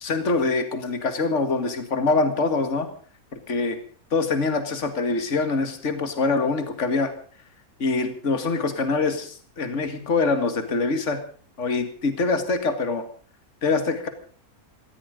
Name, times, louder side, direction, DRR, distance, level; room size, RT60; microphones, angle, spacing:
voice 1, 0.0-2.9 3.5-3.8 4.1-7.1 7.8-11.2 11.6-13.0 13.6-14.1, left 3 dB, 50° left, 9 dB, 2.3 m, -24 dB
17.5 x 15.0 x 5.1 m, 0.44 s
omnidirectional pair, 1.6 m